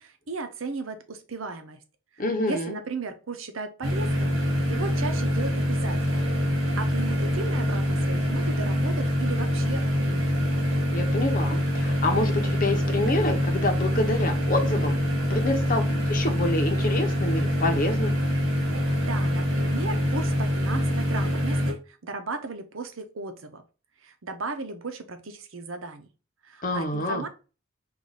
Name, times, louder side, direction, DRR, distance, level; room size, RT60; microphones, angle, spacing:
voice 1, 0.0-1.8 2.1-4.4 4.7-10.3 19.0-23.6 24.0-26.1 26.4-27.3, right 3 dB, 85° right, 8 dB, 0.8 m, -36 dB
voice 2, 2.2-2.8 10.9-14.9 15.3-18.1 26.6-27.2, left 2 dB, 45° left, 5 dB, 0.9 m, -27 dB
sound 1, 3.8-21.7, equal, 70° right, 1.7 m, -25 dB
4.9 x 2.6 x 4.0 m, 0.34 s
head